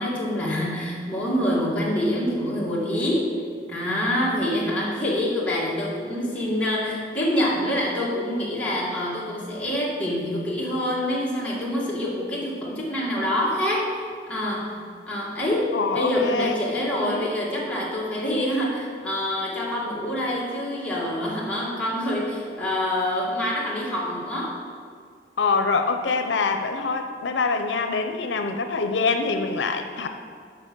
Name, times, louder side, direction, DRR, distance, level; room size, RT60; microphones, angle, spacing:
voice 1, 0.0-3.3 3.7-13.9 14.3-14.8 15.1-24.6, left 1 dB, 10° left, -7 dB, 1.9 m, -26 dB
voice 2, 15.7-16.5 17.0-17.3 25.4-30.1, left 4 dB, 90° left, 6 dB, 0.6 m, -25 dB
6.9 x 6.7 x 6.0 m, 2.1 s
head